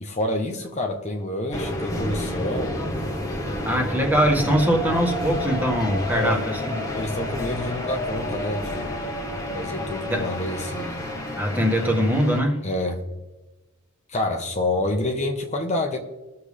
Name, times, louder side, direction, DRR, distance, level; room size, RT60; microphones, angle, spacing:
voice 1, 0.0-2.8 6.1-6.4 6.9-9.2 9.5-11.1 12.6-13.0 14.1-16.0, left 1 dB, 35° left, 2 dB, 1.1 m, -28 dB
sound 1, 1.5-12.4, left 1 dB, 15° left, 1.4 m, -29 dB
voice 2, 3.6-6.8 10.1-10.3 11.4-12.6, equal, 10° right, 1 dB, 1.7 m, -22 dB
21.0 x 7.0 x 3.4 m, 1.1 s
head